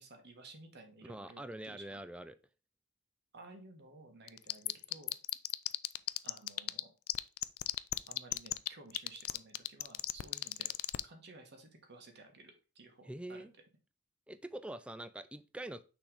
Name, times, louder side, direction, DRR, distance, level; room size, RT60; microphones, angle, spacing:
voice 1, 0.0-2.0 3.3-5.2 6.2-6.9 8.1-10.8 11.0-13.4, right 2 dB, 55° right, 1.4 m, -55 dB
voice 2, 1.0-2.4 13.0-13.5 14.3-15.8, right 1 dB, 5° right, 0.3 m, -44 dB
sound 1, 4.3-6.8 7.1-11.0, left 18 dB, 90° left, 0.4 m, -33 dB
6.1 x 3.4 x 4.8 m
head